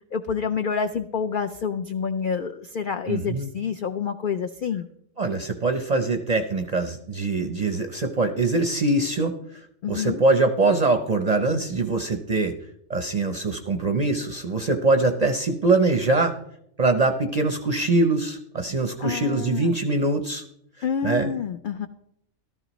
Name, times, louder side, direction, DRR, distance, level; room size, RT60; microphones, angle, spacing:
voice 1, 0.1-4.9 9.8-10.2 19.0-19.8 20.8-21.9, left 6 dB, 70° left, 7 dB, 0.4 m, -28 dB
voice 2, 3.1-3.5 5.2-9.3 9.9-12.5 12.9-16.3 16.8-20.4 21.0-21.3, right 3 dB, 45° right, 6 dB, 0.5 m, -23 dB
14.5 x 13.0 x 3.0 m, 0.76 s
omnidirectional pair, 1.4 m